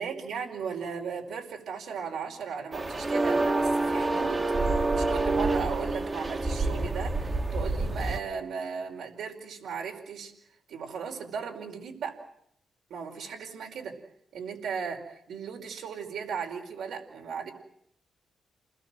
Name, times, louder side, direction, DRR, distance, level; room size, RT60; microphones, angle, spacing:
voice 1, 0.0-4.4 4.7-10.3 10.7-12.2 12.9-13.9 14.3-17.5, right 6 dB, 80° right, 0 dB, 5.0 m, -36 dB
sound 1, 2.7-8.2, right 2 dB, 20° right, 1.6 m, -27 dB
29.0 x 21.0 x 7.7 m, 0.72 s
wide cardioid pair, 170°, 0 cm